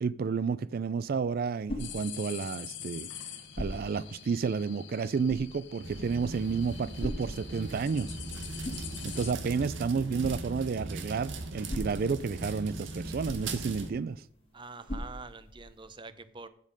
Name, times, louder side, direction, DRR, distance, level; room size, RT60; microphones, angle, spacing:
voice 1, 0.0-3.1 3.6-8.2 9.0-14.2, right 5 dB, 55° right, 0.4 m, -31 dB
sound 1, 1.0-15.9, left 1 dB, 30° left, 2.3 m, -44 dB
sound 2, 1.8-9.3, left 10 dB, 75° left, 1.1 m, -45 dB
sound 3, 5.8-13.9, right 2 dB, 90° right, 1.4 m, -39 dB
voice 2, 14.5-16.5, right 3 dB, 25° right, 0.7 m, -45 dB
15.5 x 5.3 x 5.2 m
head